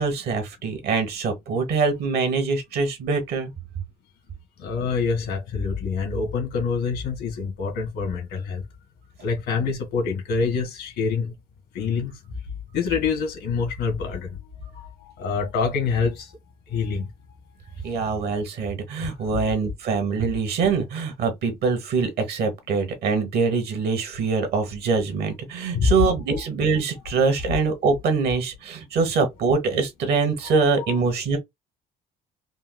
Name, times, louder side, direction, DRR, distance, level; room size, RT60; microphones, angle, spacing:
voice 1, 0.0-3.5 17.8-31.4, right 4 dB, 70° right, 1.2 m, -24 dB
voice 2, 4.6-8.6 9.2-11.3 11.7-12.1 12.7-14.4 14.7-14.9 15.2-16.3 16.7-17.1 17.8-18.1 25.7-25.9 30.9-31.0, left 5 dB, 80° left, 1.6 m, -26 dB
4.4 x 2.1 x 2.2 m
cardioid pair, 110°, 17 cm